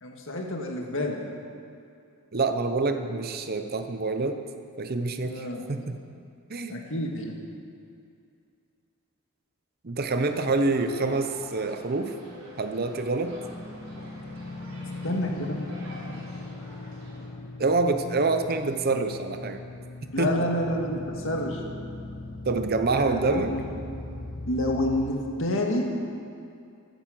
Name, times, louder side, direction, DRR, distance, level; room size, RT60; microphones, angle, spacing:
voice 1, 0.0-1.3 5.3-5.7 6.7-7.3 15.0-15.6 20.1-21.6 23.0-23.7 24.5-25.9, left 1 dB, 60° left, 1 dB, 1.9 m, -29 dB
voice 2, 2.3-4.4 4.8-6.0 6.5-6.8 9.8-12.1 12.6-13.4 17.6-19.6 20.2-20.4 22.5-23.5, right 3 dB, 45° right, 8 dB, 0.8 m, -26 dB
sound 1, 10.1-17.3, equal, 75° right, 4.3 m, -46 dB
sound 2, 13.2-25.1, left 2 dB, 40° left, 0.9 m, -39 dB
13.0 x 10.5 x 7.7 m, 2.5 s
head